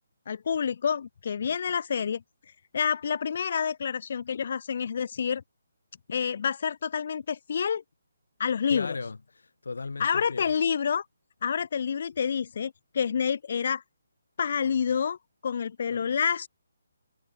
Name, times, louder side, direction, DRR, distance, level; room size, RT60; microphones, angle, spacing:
voice 1, 0.3-5.4 6.1-7.8 8.4-9.0 10.0-11.0 11.4-13.8 14.4-15.2 15.4-16.5, left 7 dB, 45° left, 1.5 m, -28 dB
voice 2, 8.7-10.4 15.9-16.0, left 4 dB, 85° left, 5.1 m, -37 dB
hypercardioid pair, 165°, 0 cm